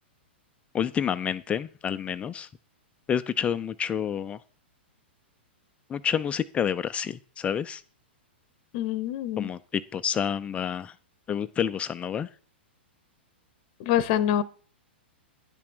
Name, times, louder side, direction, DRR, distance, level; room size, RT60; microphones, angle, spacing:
voice 1, 0.7-2.5 3.1-4.4 5.9-7.8 9.4-10.9 11.3-12.3, left 8 dB, 20° left, 12 dB, 0.5 m, -29 dB
voice 2, 8.7-9.5 13.8-14.4, left 11 dB, 45° left, 18 dB, 0.9 m, -25 dB
10.5 x 5.8 x 6.1 m, 0.41 s
hypercardioid pair, 110°, 6 cm